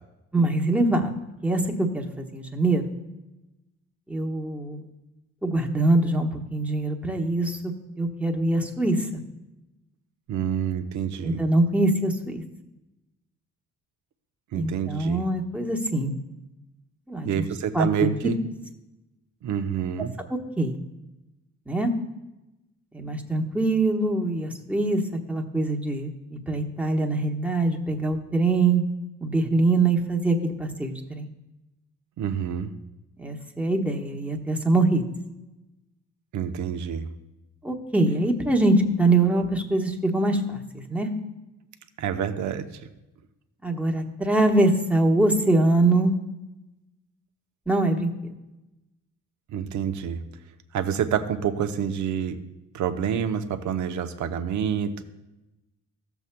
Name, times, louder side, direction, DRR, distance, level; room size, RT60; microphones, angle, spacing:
voice 1, 0.3-1.1 1.4-2.9 4.1-4.8 5.4-7.6 8.0-9.1 11.2-12.4 14.5-16.1 17.1-17.5 17.7-18.1 20.3-20.8 21.7-21.9 22.9-25.0 25.3-28.8 29.2-31.3 33.2-35.0 37.6-41.1 43.6-46.2 47.7-48.1, right 2 dB, 5° right, 2 dB, 1.1 m, -23 dB
voice 2, 10.3-11.4 14.5-15.2 17.2-18.4 19.4-20.1 32.2-32.7 36.3-37.1 42.0-42.9 49.5-50.2 50.7-52.4 52.7-55.0, right 8 dB, 70° right, 8 dB, 0.7 m, -28 dB
14.5 x 7.1 x 2.2 m, 1.0 s
cardioid pair, 90°, 30 cm